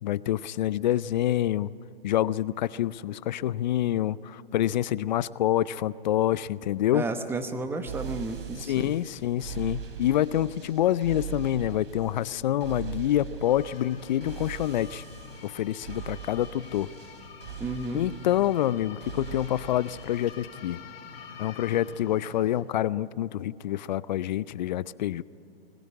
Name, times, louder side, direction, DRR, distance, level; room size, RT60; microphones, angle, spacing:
voice 1, 0.0-1.7 2.0-7.0 8.6-15.0 15.4-16.9 17.9-20.8 21.4-25.2, left 12 dB, 45° left, 20 dB, 0.5 m, -27 dB
voice 2, 6.9-9.0 17.6-18.0, right 3 dB, 5° right, 8 dB, 0.9 m, -32 dB
sound 1, 7.9-20.4, right 7 dB, 65° right, 3.1 m, -41 dB
sound 2, 13.4-22.6, left 6 dB, 70° left, 3.2 m, -47 dB
21.0 x 16.5 x 9.7 m, 2.9 s
hypercardioid pair, 140°, 31 cm